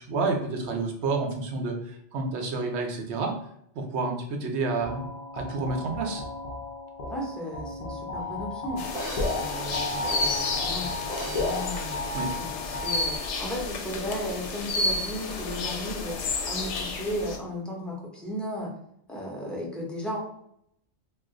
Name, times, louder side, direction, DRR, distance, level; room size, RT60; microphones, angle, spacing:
voice 1, 0.1-3.3 3.7-5.1 5.3-6.2 12.1-12.3, right 3 dB, 70° right, 2 dB, 0.8 m, -29 dB
sound 1, 4.8-13.5, left 3 dB, 50° left, 0.4 m, -34 dB
voice 2, 7.1-8.8 9.3-18.7 19.1-20.2, equal, ahead, -3 dB, 0.6 m, -35 dB
sound 2, 8.2-8.3 8.9-12.7 13.2-13.3, right 2 dB, 45° right, 0.7 m, -40 dB
sound 3, 8.8-17.4, left 3 dB, 75° left, 0.8 m, -31 dB
2.4 x 2.3 x 3.6 m, 0.72 s
omnidirectional pair, 1.2 m